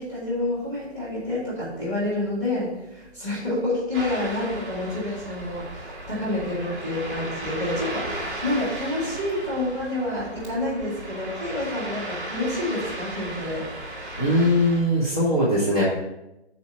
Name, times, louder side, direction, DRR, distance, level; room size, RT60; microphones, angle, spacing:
voice 1, 0.0-13.7, left 2 dB, 15° left, -9 dB, 1.9 m, -28 dB
Ocean, 3.9-14.8, right 1 dB, 5° right, 0.9 m, -35 dB
voice 2, 14.2-15.8, left 1 dB, 35° left, -7 dB, 1.2 m, -20 dB
5.4 x 4.3 x 5.7 m, 0.92 s
hypercardioid pair, 175°, 34 cm